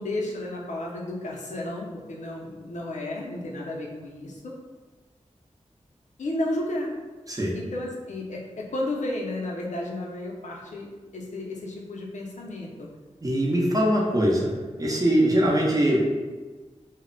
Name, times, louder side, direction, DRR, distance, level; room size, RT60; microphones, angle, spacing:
voice 1, 0.0-4.5 6.2-6.9 7.5-12.9, left 1 dB, 85° left, -2 dB, 0.5 m, -32 dB
voice 2, 13.2-14.5 14.8-16.0, equal, 30° right, -3 dB, 0.6 m, -22 dB
2.0 x 2.0 x 3.7 m, 1.3 s
wide cardioid pair, 80°, 12 cm